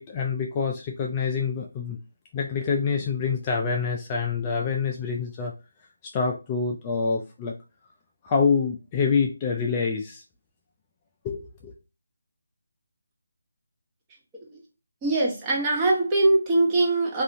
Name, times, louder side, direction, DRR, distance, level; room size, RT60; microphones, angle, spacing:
voice 1, 0.0-2.0 2.3-5.5 6.1-7.5 8.2-10.2 11.2-11.7, left 5 dB, 20° left, 0.3 m, -26 dB
voice 2, 15.0-17.2, right 2 dB, 15° right, 0.7 m, -22 dB
2.7 x 2.4 x 2.5 m
figure-of-eight pair, 160°, 0 cm